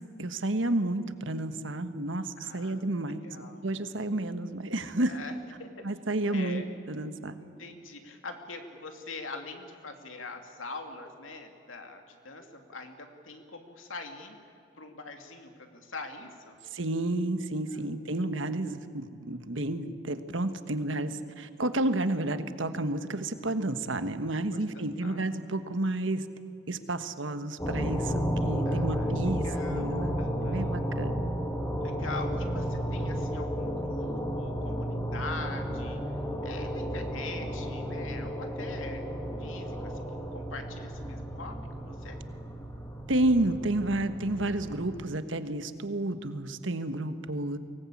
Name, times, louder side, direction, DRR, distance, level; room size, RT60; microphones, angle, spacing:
voice 1, 0.2-3.2 3.6-5.2 5.8-7.4 16.7-26.3 26.7-31.2 43.1-47.6, right 1 dB, 75° right, 10 dB, 1.3 m, -31 dB
voice 2, 2.4-3.6 5.1-5.3 5.6-5.7 6.1-6.7 7.4-14.4 14.8-16.6 17.7-18.1 24.5-25.2 28.7-29.2 29.4-29.9 30.1-30.8 31.8-36.0 36.4-39.0 39.4-42.2, left 3 dB, 85° left, 5 dB, 2.7 m, -43 dB
sound 1, 27.6-45.0, equal, 15° left, 2.1 m, -33 dB
24.0 x 19.0 x 8.6 m, 2.6 s
head